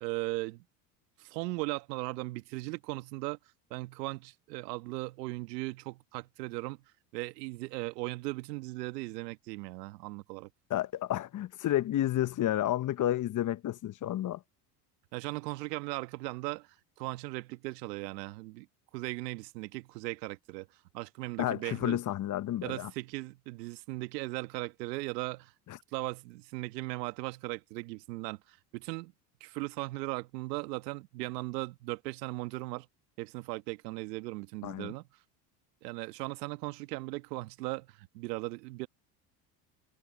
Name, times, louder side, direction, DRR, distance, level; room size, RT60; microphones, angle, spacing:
voice 1, 0.0-0.6 1.2-3.4 3.7-6.8 7.1-10.5 15.1-16.7 17.0-18.7 18.9-20.7 20.9-22.0 22.6-25.5 25.9-29.1 29.4-32.9 33.2-35.0 35.8-38.9, right 22 dB, 75° right, 1.5 m, -38 dB
voice 2, 10.7-14.4 21.4-22.9 25.7-25.8 34.6-34.9, left 13 dB, 40° left, 0.9 m, -31 dB
hypercardioid pair, 85°, 49 cm